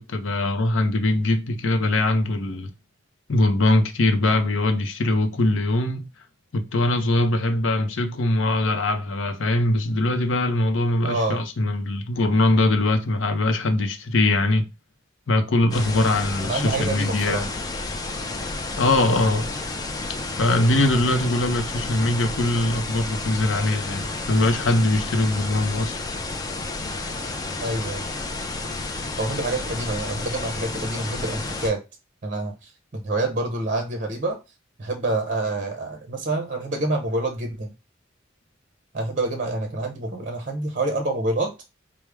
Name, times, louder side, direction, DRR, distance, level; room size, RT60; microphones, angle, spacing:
voice 1, 0.0-2.7 3.3-6.1 6.5-14.6 15.3-17.5 18.8-19.5 20.4-26.0, left 2 dB, 80° left, 0.6 m, -22 dB
voice 2, 11.0-11.4 16.4-17.4 27.6-28.1 29.2-31.8 32.2-34.4 34.8-37.7 38.9-41.5, right 2 dB, 40° right, 0.6 m, -27 dB
sound 1, 15.7-31.7, left 3 dB, 20° left, 0.4 m, -31 dB
4.7 x 2.1 x 3.3 m
head